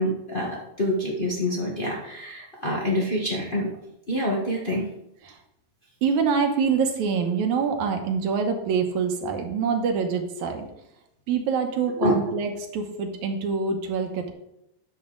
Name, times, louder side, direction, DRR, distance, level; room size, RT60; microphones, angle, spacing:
voice 1, 0.0-3.7 4.1-4.9 12.0-12.2, left 1 dB, 50° left, -3 dB, 0.6 m, -26 dB
voice 2, 6.0-10.7 11.3-14.3, right 5 dB, 70° right, 5 dB, 2.3 m, -25 dB
10.5 x 7.0 x 3.9 m, 0.82 s
omnidirectional pair, 3.5 m